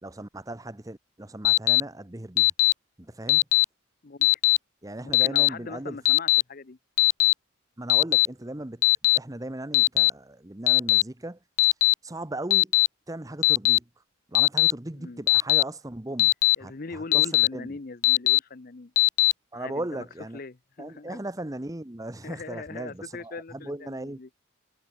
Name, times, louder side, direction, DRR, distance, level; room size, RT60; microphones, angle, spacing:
voice 1, 0.0-2.5 3.0-3.4 4.8-6.0 7.8-8.9 9.1-11.4 12.0-12.8 13.1-13.9 14.3-16.3 16.6-17.8 19.5-20.4 20.8-24.2, right 1 dB, 15° right, 1.0 m, -37 dB
Alarm, 1.4-1.8 2.4-2.7 3.3-3.6 4.2-4.6 5.1-5.5 6.0-6.4 7.0-7.3 7.9-8.3 8.8-9.2 9.7-10.1 10.7-11.0 11.6-11.9 12.5-12.9 13.4-13.8 14.3-14.7 15.3-15.6 16.2-16.5 17.1-17.5 18.0-18.4 19.0-19.3, left 22 dB, 80° left, 0.3 m, -19 dB
voice 2, 5.0-6.8 14.9-15.2 16.6-18.9 19.5-20.1 20.3-21.2 22.2-24.3, left 3 dB, 45° left, 0.7 m, -40 dB
head